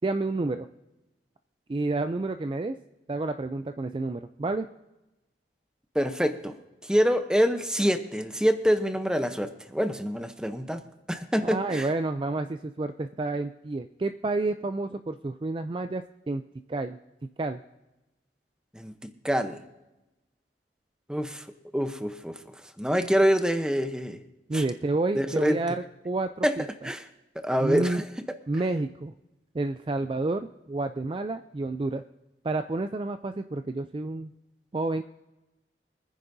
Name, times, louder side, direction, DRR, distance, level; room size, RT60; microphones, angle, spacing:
voice 1, 0.0-0.7 1.7-2.8 3.1-4.7 11.4-16.4 16.7-17.0 17.4-17.6 24.5-26.9 27.6-28.0 28.5-29.1 29.5-32.0 32.4-34.3 34.7-35.0, right 2 dB, 30° right, 8 dB, 0.3 m, -30 dB
voice 2, 5.9-6.5 6.9-10.8 11.1-11.9 18.7-19.6 21.1-21.4 21.7-22.4 22.8-24.2 24.5-24.6 25.1-25.6 26.4-26.6 26.8-27.0 27.4-28.0, equal, 5° right, 8 dB, 0.7 m, -26 dB
24.0 x 10.0 x 2.7 m, 1.0 s
head